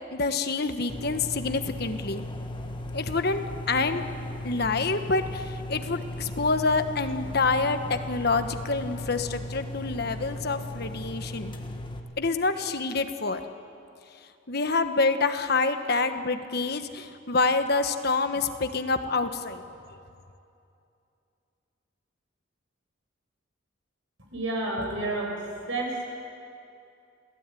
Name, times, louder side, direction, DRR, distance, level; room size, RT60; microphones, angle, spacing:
voice 1, 0.1-2.3 2.9-4.1 4.4-11.5 12.2-13.4 14.5-19.6, left 3 dB, 55° left, 8 dB, 1.3 m, -27 dB
sound 1, 0.9-12.0, left 1 dB, 25° left, 1.6 m, -36 dB
voice 2, 24.3-25.4 25.7-26.1, right 2 dB, 85° right, 0 dB, 6.7 m, -29 dB
27.5 x 17.0 x 9.2 m, 2.6 s
head